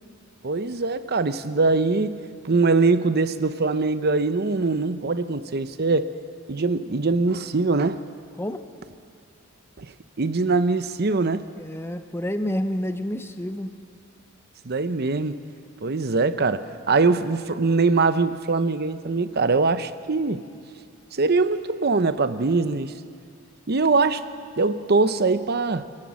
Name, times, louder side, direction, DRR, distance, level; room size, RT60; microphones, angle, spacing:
voice 1, 0.4-2.2 2.4-6.1 6.5-8.0 9.8-9.9 10.2-11.5 14.6-15.3 15.8-20.4 21.1-22.9 23.7-24.2 24.6-25.8, right 3 dB, 50° right, 12 dB, 0.7 m, -22 dB
voice 2, 11.6-13.7, equal, 10° left, 8 dB, 0.8 m, -29 dB
26.5 x 17.5 x 6.3 m, 2.3 s
head